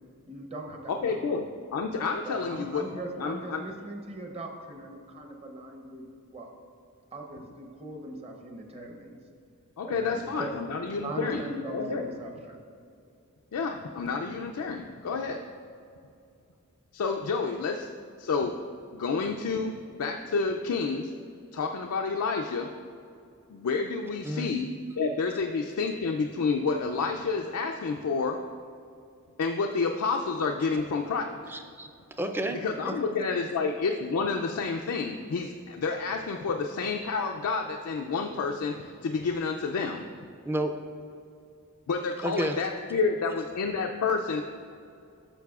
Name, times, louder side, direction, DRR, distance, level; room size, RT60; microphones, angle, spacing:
voice 1, 0.3-1.2 2.2-6.5 7.1-9.2 9.8-10.6 11.0-12.6, right 1 dB, 30° right, 2 dB, 0.8 m, -40 dB
voice 2, 0.9-3.6 9.8-11.4 11.7-12.1 13.5-15.4 16.9-17.9 18.2-18.5 18.9-21.1 21.5-22.7 23.5-24.7 25.0-28.4 29.4-31.4 32.6-40.1 41.9-44.4, left 4 dB, 70° left, 3 dB, 0.4 m, -29 dB
voice 3, 31.5-32.6 32.9-33.0 40.5-40.7 42.2-42.6, right 1 dB, 10° right, 6 dB, 0.4 m, -31 dB
11.5 x 6.5 x 2.4 m, 2.5 s
head